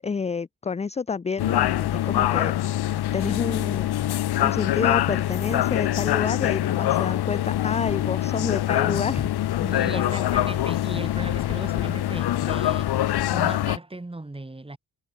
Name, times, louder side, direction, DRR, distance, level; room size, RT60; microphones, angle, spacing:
voice 1, 0.0-3.9 4.4-9.3 9.7-10.3, left 5 dB, 15° left, 0.5 m, -29 dB
sound 1, 1.4-13.8, left 13 dB, 75° left, 0.9 m, -24 dB
voice 2, 9.6-12.9 13.3-14.8, right 2 dB, 15° right, 6.7 m, -37 dB
wide cardioid pair, 140°, 39 cm